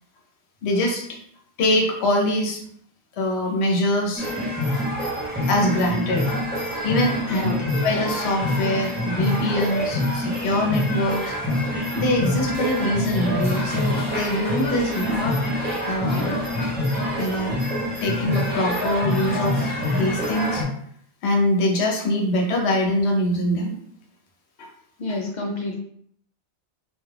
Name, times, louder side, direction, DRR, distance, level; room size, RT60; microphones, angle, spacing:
voice 1, 0.6-1.2 1.6-2.6 3.2-4.4 5.1-6.3 6.8-7.5 7.8-11.3 11.9-15.4 15.8-16.4 17.2-17.6 18.0-20.6 21.2-23.7 24.6-24.7, left 1 dB, 75° left, 0 dB, 0.9 m, -23 dB
sound 1, 4.2-20.6, left 1 dB, 10° right, 0.6 m, -26 dB
voice 2, 7.3-7.6 25.0-25.8, left 2 dB, 55° left, -1 dB, 0.5 m, -28 dB
2.3 x 2.2 x 3.2 m, 0.66 s
omnidirectional pair, 1.1 m